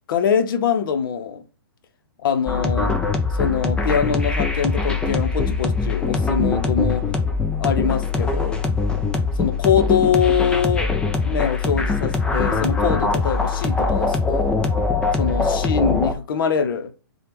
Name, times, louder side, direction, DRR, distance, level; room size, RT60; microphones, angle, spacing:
voice 1, 0.1-1.4 2.2-2.9 3.4-7.0 7.6-8.6 9.4-10.9 11.3-14.5 15.2-16.9, left 7 dB, 65° left, 0.7 m, -23 dB
sound 1, 2.5-16.1, left 4 dB, 5° left, 0.4 m, -22 dB
3.4 x 2.3 x 4.4 m
hypercardioid pair, 140°, 12 cm